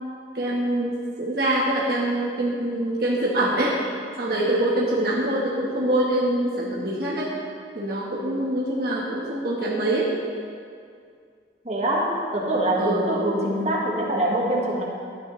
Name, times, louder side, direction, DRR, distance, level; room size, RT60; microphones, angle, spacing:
voice 1, 0.3-3.8 4.2-7.3 7.7-10.1 12.7-13.1, right 1 dB, 55° right, -5 dB, 1.2 m, -24 dB
voice 2, 11.6-14.8, right 1 dB, 35° right, -3 dB, 1.5 m, -24 dB
13.0 x 9.5 x 3.1 m, 2.2 s
head